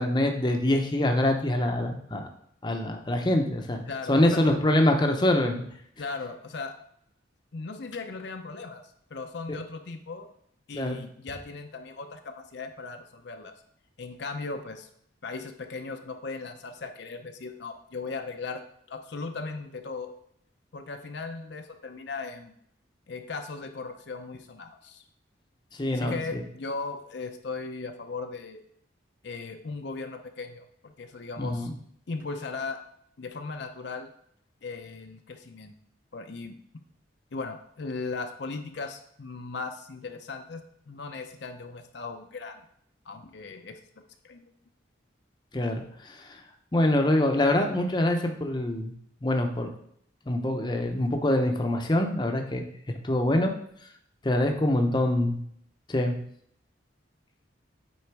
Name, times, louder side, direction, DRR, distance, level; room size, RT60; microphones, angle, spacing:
voice 1, 0.0-2.3 2.6-3.8 4.1-5.6 10.7-11.0 25.8-26.4 31.4-31.7 45.5-46.4 46.7-48.9 49.2-49.7 50.3-52.7 53.0-53.5 54.2-55.4 55.9-56.1, left 1 dB, 20° left, 3 dB, 0.7 m, -25 dB
voice 2, 3.9-4.6 6.0-6.8 7.5-8.8 9.1-10.3 10.7-13.5 14.0-14.9 15.2-18.6 18.9-20.1 20.7-22.5 23.1-25.0 25.9-28.6 29.2-31.7 32.1-32.8 33.2-34.1 34.6-35.7 36.1-36.6 37.3-42.6 43.1-43.8 44.2-44.5, left 4 dB, 60° left, 6 dB, 0.6 m, -37 dB
8.4 x 3.8 x 4.6 m, 0.68 s
head